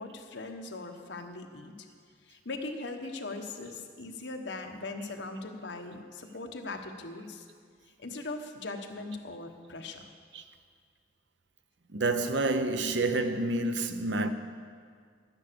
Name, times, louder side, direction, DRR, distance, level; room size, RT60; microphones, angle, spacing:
voice 1, 0.0-1.9 2.2-7.5 8.0-10.1, left 3 dB, 70° left, 1.2 m, -40 dB
voice 2, 11.9-14.3, right 2 dB, 75° right, 0.8 m, -28 dB
12.0 x 9.6 x 6.9 m
head